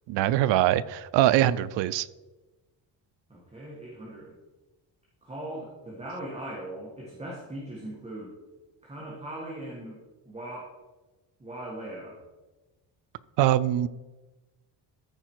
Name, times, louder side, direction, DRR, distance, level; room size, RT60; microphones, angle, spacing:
voice 1, 0.1-2.1 13.4-13.9, right 13 dB, 80° right, 16 dB, 0.5 m, -23 dB
voice 2, 3.3-4.4 5.2-8.3 8.8-10.0 10.2-10.7 11.4-12.2, right 1 dB, 15° right, -5 dB, 1.6 m, -39 dB
13.5 x 4.8 x 4.6 m, 1.2 s
cardioid pair, 160°, 43 cm